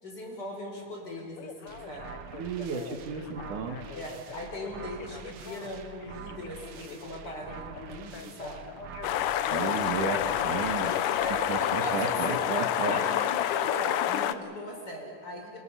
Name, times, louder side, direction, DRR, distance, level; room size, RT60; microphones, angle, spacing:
voice 1, 0.0-2.2 3.9-8.7 9.8-10.0 11.2-12.4 12.9-15.6, equal, 30° left, 0 dB, 5.1 m, -39 dB
Telephone, 1.1-10.7 12.3-12.4, left 8 dB, 65° left, 1.5 m, -46 dB
sound 1, 1.7-11.6, right 6 dB, 60° right, 1.5 m, -46 dB
voice 2, 2.3-3.8 9.5-10.9 11.5-13.0, right 5 dB, 75° right, 4 dB, 3.1 m, -33 dB
sound 2, 9.0-14.3, left 11 dB, 90° left, 2.4 m, -28 dB
29.0 x 24.0 x 5.7 m, 2.5 s
omnidirectional pair, 3.6 m